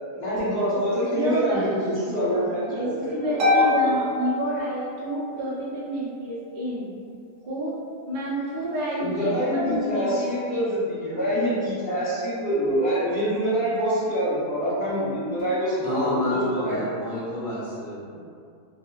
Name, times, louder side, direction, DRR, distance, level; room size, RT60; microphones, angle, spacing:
voice 1, 0.1-4.0 9.0-16.8, equal, 40° left, -11 dB, 1.1 m, -26 dB
voice 2, 1.1-6.9 7.4-7.7 8.1-10.7 18.1-18.2, right 1 dB, 55° right, -8 dB, 0.6 m, -30 dB
Harp, 3.4-5.3, left 3 dB, 85° right, 1.2 m, -24 dB
voice 3, 15.8-18.0, left 1 dB, 60° left, -9 dB, 1.0 m, -28 dB
2.8 x 2.1 x 2.2 m, 2.3 s
omnidirectional pair, 1.7 m